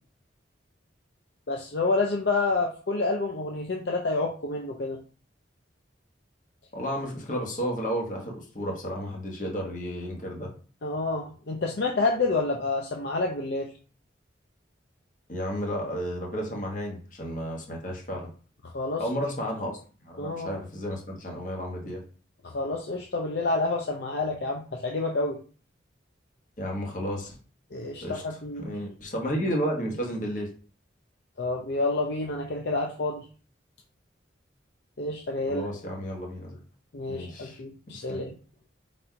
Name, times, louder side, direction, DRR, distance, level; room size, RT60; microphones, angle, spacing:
voice 1, 1.5-5.0 10.8-13.7 18.7-19.0 20.2-20.5 22.4-25.4 27.7-28.7 31.4-33.2 35.0-35.7 36.9-38.3, left 3 dB, 60° left, 0 dB, 0.6 m, -28 dB
voice 2, 6.7-10.5 15.3-18.3 19.0-19.7 20.0-22.0 26.6-27.4 28.0-28.2 28.6-30.5 35.5-36.6 37.1-37.6 37.9-38.2, equal, 40° left, 0 dB, 1.2 m, -32 dB
4.1 x 2.6 x 4.4 m, 0.39 s
head